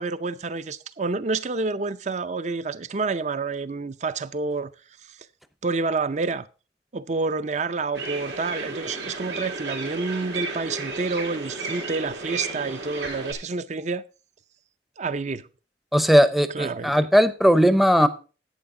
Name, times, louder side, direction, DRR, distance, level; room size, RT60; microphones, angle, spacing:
voice 1, 0.0-4.7 5.1-5.2 5.6-6.5 6.9-14.0 15.0-15.5 16.5-17.1, right 3 dB, 40° right, 0.5 m, -28 dB
sound 1, 7.9-13.3, right 3 dB, 90° right, 3.2 m, -33 dB
voice 2, 15.9-18.1, equal, ahead, 0.6 m, -18 dB
11.5 x 8.7 x 3.7 m
head